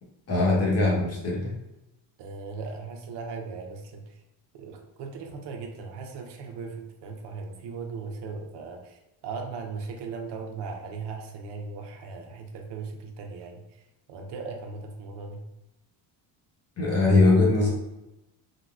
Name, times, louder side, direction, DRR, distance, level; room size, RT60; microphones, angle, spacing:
voice 1, 0.3-1.5 16.8-17.7, left 2 dB, 30° left, -3 dB, 1.0 m, -21 dB
voice 2, 2.2-4.2 4.5-13.8 14.1-15.4, right 4 dB, 60° right, 3 dB, 0.6 m, -38 dB
3.7 x 2.1 x 2.3 m, 0.95 s
cardioid pair, 130°, 48 cm